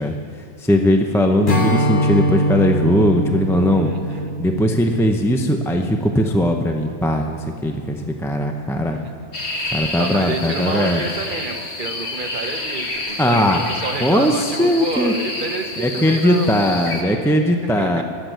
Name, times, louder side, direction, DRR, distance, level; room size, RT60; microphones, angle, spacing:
voice 1, 0.0-3.9 4.4-9.0 9.7-11.0 13.2-13.6 14.0-15.1 15.8-18.0, left 1 dB, 5° left, 3 dB, 0.6 m, -19 dB
Strum, 1.5-6.9, equal, 45° left, 1.4 m, -23 dB
voice 2, 3.7-4.3 9.5-16.9 17.6-18.0, right 4 dB, 45° right, 7 dB, 1.1 m, -30 dB
sound 1, 9.3-17.0, left 2 dB, 65° left, 2.0 m, -29 dB
13.5 x 7.8 x 9.1 m, 2.5 s
omnidirectional pair, 1.2 m